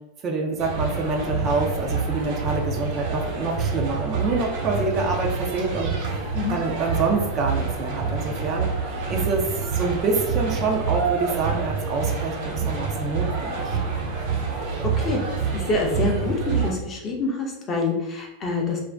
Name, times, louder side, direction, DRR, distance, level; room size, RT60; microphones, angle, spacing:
voice 1, 0.2-5.9 6.5-8.7 9.1-13.8, right 3 dB, 30° right, 1 dB, 0.4 m, -26 dB
sound 1, 0.6-16.7, right 5 dB, 70° right, 1.0 m, -27 dB
voice 2, 15.5-18.8, left 3 dB, 25° left, 0 dB, 0.6 m, -26 dB
2.4 x 2.1 x 3.3 m, 0.90 s
supercardioid pair, 155°, 0 cm